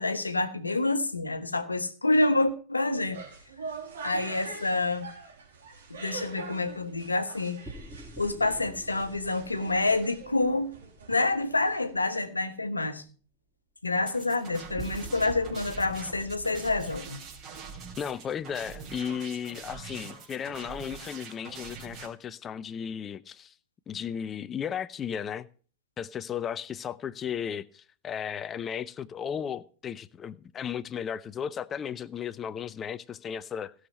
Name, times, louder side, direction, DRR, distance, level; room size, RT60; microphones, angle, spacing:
voice 1, 0.0-3.2 4.0-5.1 5.9-7.6 8.2-10.7 11.1-13.0 13.8-17.2, left 2 dB, 85° left, 1.2 m, -27 dB
sound 1, 3.0-12.0, right 5 dB, 75° right, 4.3 m, -44 dB
sound 2, 7.6-11.9 14.8-19.4, right 3 dB, ahead, 3.0 m, -47 dB
sound 3, 14.1-22.1, right 5 dB, 40° right, 3.9 m, -44 dB
voice 2, 18.0-23.5 23.9-25.5 26.0-33.7, left 8 dB, 25° left, 0.7 m, -35 dB
16.0 x 6.6 x 5.5 m
figure-of-eight pair, 90°, 0 cm